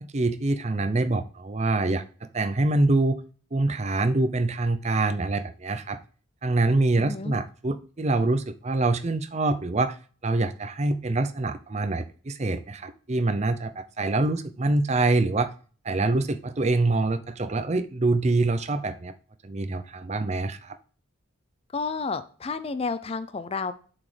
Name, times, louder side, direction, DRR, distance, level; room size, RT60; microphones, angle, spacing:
voice 1, 0.0-2.0 2.3-3.2 3.5-6.0 6.4-9.9 10.2-15.5 15.8-19.1 19.4-20.7, right 2 dB, 30° right, 10 dB, 0.5 m, -25 dB
voice 2, 6.9-7.3 21.7-23.7, left 4 dB, 30° left, 13 dB, 0.4 m, -31 dB
7.5 x 6.1 x 3.3 m, 0.40 s
head